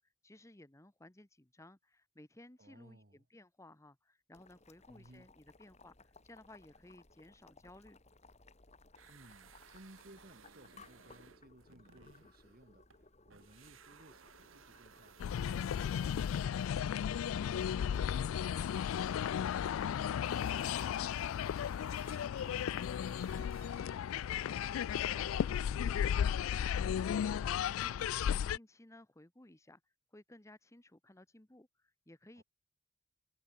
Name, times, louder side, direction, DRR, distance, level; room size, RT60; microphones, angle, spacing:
voice 1, 0.0-8.0 22.0-24.1 24.4-32.4, left 1 dB, 15° left, 1.1 m, -59 dB
voice 2, 2.6-3.3 4.9-5.3 9.1-21.1 32.3-32.4, right 1 dB, 50° right, 2.4 m, -61 dB
Boiling, 4.3-20.4, left 3 dB, 35° left, 3.0 m, -62 dB
sound 1, 8.9-13.0 13.3-24.1, right 6 dB, 75° right, 1.4 m, -61 dB
sound 2, 15.2-28.6, left 8 dB, 80° left, 0.3 m, -34 dB
head